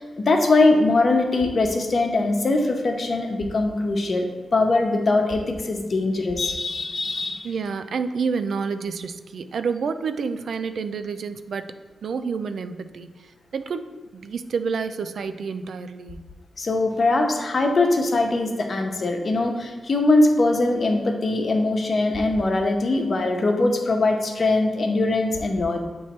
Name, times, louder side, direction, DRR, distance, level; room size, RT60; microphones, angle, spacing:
voice 1, 0.0-7.5 16.6-25.8, left 2 dB, 55° left, 3 dB, 0.8 m, -21 dB
voice 2, 7.4-11.7 12.0-13.1 13.5-16.2, right 5 dB, 75° right, 10 dB, 0.3 m, -29 dB
7.1 x 3.1 x 4.3 m, 1.3 s
cardioid pair, 55°, 0 cm